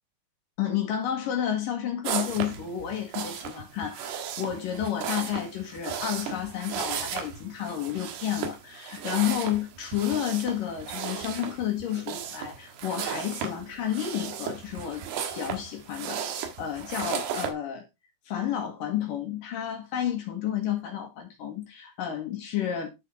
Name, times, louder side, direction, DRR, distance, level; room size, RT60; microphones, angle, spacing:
voice 1, 0.6-15.0 15.3-17.9 18.3-22.9, left 10 dB, 65° left, 3.0 m, -31 dB
sound 1, 2.0-17.5, right 8 dB, 90° right, 3.4 m, -35 dB
11.5 x 6.7 x 3.2 m
omnidirectional pair, 4.6 m